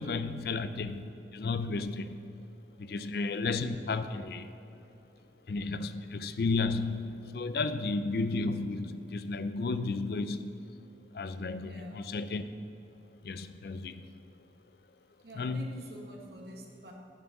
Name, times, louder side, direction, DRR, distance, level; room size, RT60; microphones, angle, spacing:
voice 1, 0.0-2.5 2.8-4.7 5.5-10.6 11.1-12.4 13.2-14.1 15.4-15.8, left 3 dB, 60° left, 11 dB, 0.4 m, -33 dB
voice 2, 2.7-3.1 11.6-12.1 15.2-16.9, right 1 dB, 65° right, -1 dB, 1.5 m, -48 dB
7.9 x 6.3 x 7.2 m, 2.9 s
head